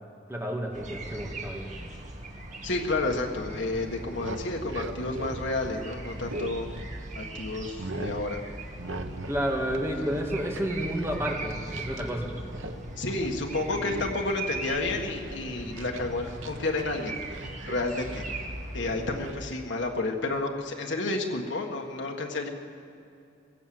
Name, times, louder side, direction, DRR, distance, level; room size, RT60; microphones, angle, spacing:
voice 1, 0.3-1.7 9.3-12.3, equal, 15° right, 0 dB, 2.2 m, -30 dB
sound 1, 0.7-19.3, right 2 dB, 40° right, 1.9 m, -39 dB
voice 2, 2.6-6.7 7.2-8.4 13.0-17.4 17.7-18.2 18.7-22.5, left 2 dB, 70° left, 2 dB, 1.7 m, -31 dB
sound 2, 4.1-7.2 7.5-8.2 8.8-9.4 9.7-12.1 12.4-12.8 13.1-13.3 13.7-14.3 14.7-16.8 17.1-18.4 19.2-19.4, right 2 dB, 85° right, 1.3 m, -40 dB
20.5 x 16.0 x 7.9 m, 2.6 s
head